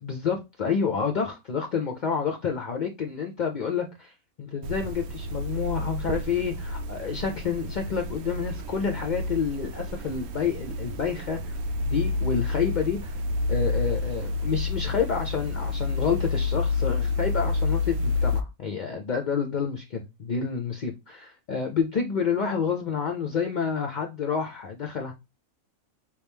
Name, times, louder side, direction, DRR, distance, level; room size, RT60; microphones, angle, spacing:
voice 1, 0.0-13.2 13.5-25.1, left 6 dB, 50° left, 0.5 m, -29 dB
sound 1, 4.6-18.4, left 3 dB, 90° right, 1.1 m, -29 dB
4.8 x 3.0 x 3.5 m
omnidirectional pair, 1.5 m